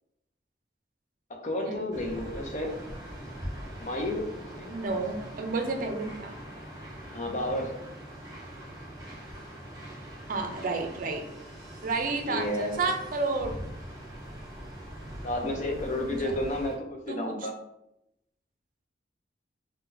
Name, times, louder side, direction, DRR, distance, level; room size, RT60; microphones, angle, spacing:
voice 1, 1.3-2.7 3.8-4.7 7.0-7.8 12.2-12.8 15.2-17.5, left 1 dB, 40° left, 1 dB, 0.6 m, -32 dB
sound 1, 1.9-16.8, equal, 20° right, 0.8 m, -42 dB
voice 2, 4.7-6.3 10.3-11.2 11.8-13.6 16.0-16.4 17.1-17.5, right 3 dB, 50° right, 4 dB, 0.5 m, -31 dB
2.7 x 2.2 x 3.8 m, 0.83 s
head